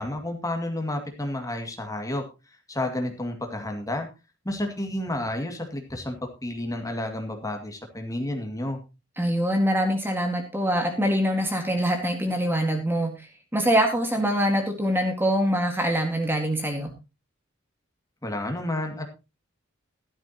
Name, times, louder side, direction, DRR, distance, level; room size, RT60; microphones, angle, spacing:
voice 1, 0.0-2.2 2.7-4.1 4.4-8.8 18.2-19.0, left 1 dB, 15° left, 4 dB, 2.2 m, -31 dB
voice 2, 9.2-16.9, equal, 10° right, 4 dB, 1.8 m, -24 dB
14.5 x 12.0 x 2.9 m, 0.27 s
head